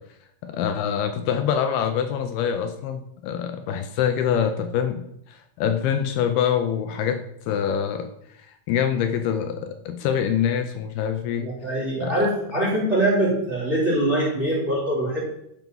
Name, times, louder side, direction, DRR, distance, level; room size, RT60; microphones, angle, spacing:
voice 1, 0.4-8.1 8.7-11.5 12.0-12.1, left 8 dB, 80° left, 7 dB, 2.6 m, -25 dB
voice 2, 11.4-15.2, right 1 dB, 20° right, -7 dB, 3.3 m, -23 dB
12.0 x 5.8 x 5.5 m, 0.77 s
omnidirectional pair, 4.6 m